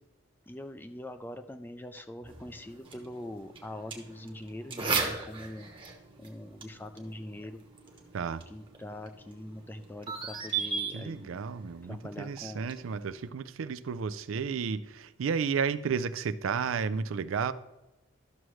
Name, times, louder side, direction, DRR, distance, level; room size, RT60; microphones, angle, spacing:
voice 1, 0.5-5.7 6.2-7.6 8.5-11.4 11.8-12.7, left 1 dB, 10° left, 0.4 m, -43 dB
sound 1, 2.2-13.3, right 5 dB, 25° right, 1.0 m, -38 dB
voice 2, 10.9-17.5, right 6 dB, 85° right, 0.4 m, -32 dB
12.5 x 6.3 x 3.1 m
head